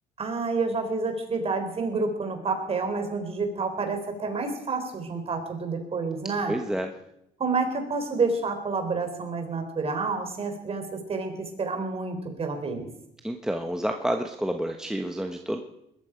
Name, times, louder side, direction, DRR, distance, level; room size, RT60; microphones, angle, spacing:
voice 1, 0.2-6.6 7.4-12.9, right 4 dB, 35° right, 6 dB, 3.8 m, -29 dB
voice 2, 6.5-6.9 13.2-15.6, right 1 dB, 5° right, 4 dB, 1.1 m, -29 dB
20.5 x 13.5 x 5.1 m, 0.80 s
cardioid pair, 110°, 17 cm